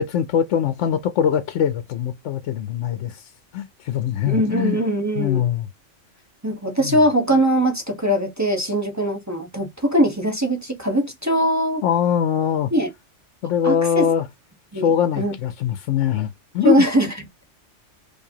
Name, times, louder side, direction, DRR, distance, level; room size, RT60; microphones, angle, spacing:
voice 1, 0.0-4.8 5.2-5.7 6.8-7.0 11.8-12.7 13.4-14.3 14.7-16.8, left 8 dB, 75° left, 0.9 m, -22 dB
voice 2, 4.3-5.4 6.4-11.8 12.7-12.9 13.6-14.1 14.7-14.9 15.2-15.3 16.6-17.1, right 1 dB, 15° right, 0.8 m, -21 dB
4.6 x 2.6 x 2.7 m
omnidirectional pair, 1.3 m